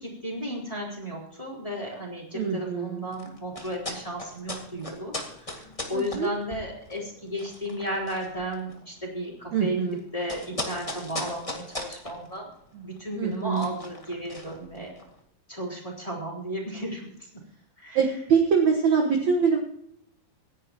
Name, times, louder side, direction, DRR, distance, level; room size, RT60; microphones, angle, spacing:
voice 1, 0.0-5.1 5.4-12.5 12.8-14.9 15.5-17.3 17.8-18.0, equal, 10° left, -2 dB, 3.6 m, -34 dB
voice 2, 2.3-3.1 5.9-6.3 9.5-10.0 12.7-12.9 13.2-13.7 18.0-19.6, right 6 dB, 60° right, 2 dB, 2.1 m, -24 dB
sound 1, 3.0-15.2, left 1 dB, 40° left, 0.5 m, -39 dB
26.0 x 10.5 x 3.0 m, 0.73 s
omnidirectional pair, 4.6 m